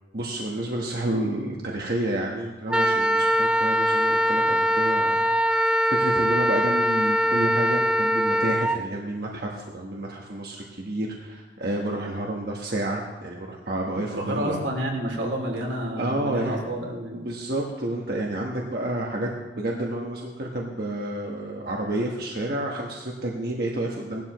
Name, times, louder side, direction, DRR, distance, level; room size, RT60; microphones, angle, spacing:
voice 1, 0.1-5.3 5.8-14.6 16.0-16.6 17.1-19.3 19.5-24.2, right 1 dB, 55° right, -1 dB, 1.3 m, -30 dB
Wind instrument woodwind instrument, 2.7-8.8, equal, 5° right, 0.4 m, -22 dB
voice 2, 14.1-17.3, right 1 dB, 85° right, 0 dB, 2.8 m, -29 dB
17.5 x 12.0 x 3.1 m, 1.2 s
head